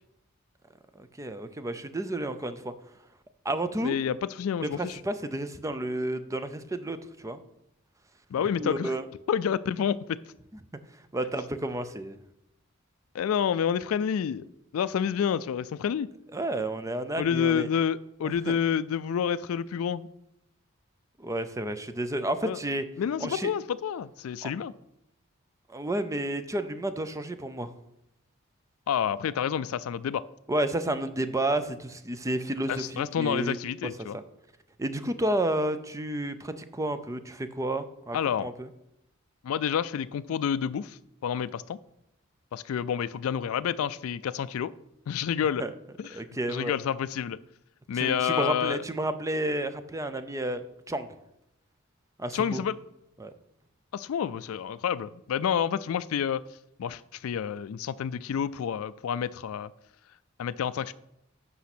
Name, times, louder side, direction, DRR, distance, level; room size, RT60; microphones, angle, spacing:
voice 1, 1.0-2.7 3.4-4.0 4.6-7.4 8.6-9.0 11.1-12.1 16.3-17.7 18.5-18.6 21.2-22.8 23.2-23.5 24.4-24.5 25.7-27.7 30.5-33.6 34.1-34.2 34.8-38.7 45.6-45.7 46.1-46.7 47.9-50.6 50.9-51.1 52.2-52.6 53.2-53.3, right 1 dB, 15° right, 11 dB, 0.5 m, -31 dB
voice 2, 3.8-5.0 8.3-8.9 9.3-10.2 13.1-14.5 14.7-16.1 17.2-20.1 22.4-22.6 23.0-24.7 28.9-30.2 32.7-34.2 38.1-38.5 39.4-41.8 42.5-44.7 45.1-45.6 46.0-46.2 46.5-47.4 47.9-48.8 52.3-52.8 53.9-56.4 56.8-59.7 60.4-60.9, left 8 dB, 80° left, 15 dB, 0.3 m, -29 dB
8.4 x 5.5 x 6.0 m, 0.82 s
head